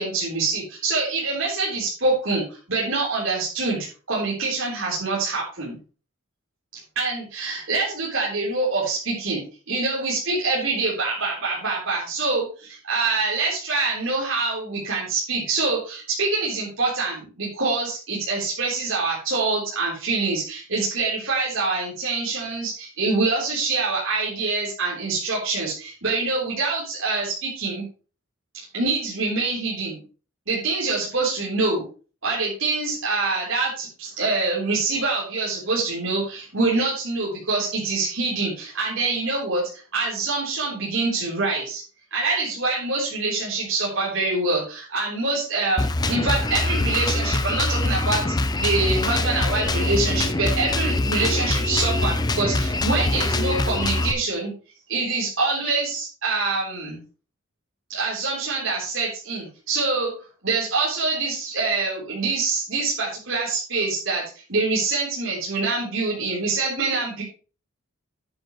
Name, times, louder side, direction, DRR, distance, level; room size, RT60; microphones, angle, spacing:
voice 1, 0.0-5.8 7.0-27.8 28.7-30.0 30.5-31.8 32.2-39.6 39.9-41.8 42.1-48.3 48.6-54.5 54.9-57.0 57.9-60.1 60.4-64.2 64.5-67.2, right 3 dB, 70° right, -6 dB, 4.0 m, -25 dB
Drum kit, 45.8-54.1, left 2 dB, 20° left, 0.6 m, -23 dB
10.5 x 9.6 x 3.2 m, 0.36 s
head